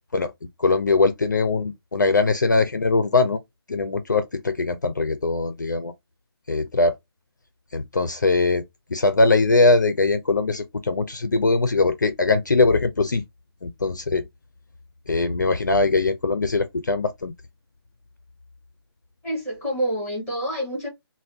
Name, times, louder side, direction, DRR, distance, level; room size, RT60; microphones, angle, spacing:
voice 1, 0.6-3.4 3.7-5.9 6.5-6.9 7.7-8.6 8.9-13.2 13.6-14.3 15.1-17.3, left 3 dB, 45° left, 0.4 m, -21 dB
voice 2, 19.2-20.9, equal, 5° right, 0.7 m, -27 dB
2.5 x 2.1 x 3.3 m
hypercardioid pair, 180°, 14 cm